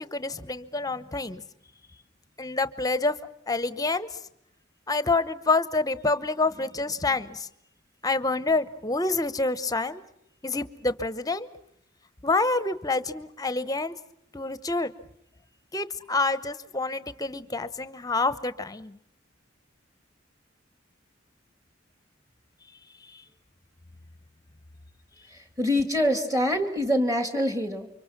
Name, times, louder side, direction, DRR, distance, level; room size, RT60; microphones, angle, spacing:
voice 1, 0.0-1.4 2.4-3.1 3.5-4.1 4.9-7.5 8.0-10.0 10.4-11.5 12.2-14.0 14.3-14.9 15.7-19.0 23.1-23.2, left 3 dB, 20° left, 13 dB, 0.9 m, -27 dB
voice 2, 25.3-27.9, equal, 15° right, 7 dB, 2.5 m, -25 dB
29.5 x 24.5 x 6.0 m, 0.75 s
head